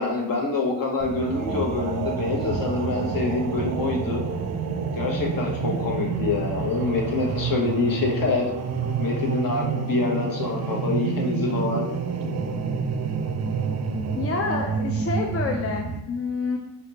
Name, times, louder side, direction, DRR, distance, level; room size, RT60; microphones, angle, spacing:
voice 1, 0.0-4.2 4.9-8.5 9.0-11.9, left 3 dB, 55° left, 0 dB, 0.9 m, -26 dB
sound 1, 1.0-16.0, right 5 dB, 45° right, 0.4 m, -28 dB
voice 2, 14.1-16.6, left 4 dB, 35° left, 2 dB, 0.4 m, -28 dB
4.1 x 3.3 x 2.8 m, 0.91 s
cardioid pair, 100°, 40 cm